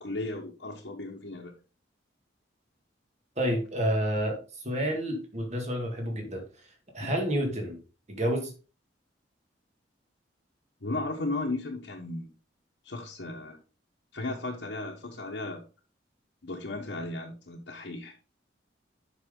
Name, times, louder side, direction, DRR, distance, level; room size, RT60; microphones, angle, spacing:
voice 1, 0.0-1.5 7.0-7.1 10.8-12.3 12.8-13.6 14.1-15.6 16.4-18.1, left 2 dB, 70° left, -2 dB, 1.1 m, -35 dB
voice 2, 3.4-6.7 6.9-7.8 8.1-8.5, equal, 40° right, 2 dB, 2.0 m, -29 dB
8.0 x 5.5 x 3.8 m, 0.34 s
head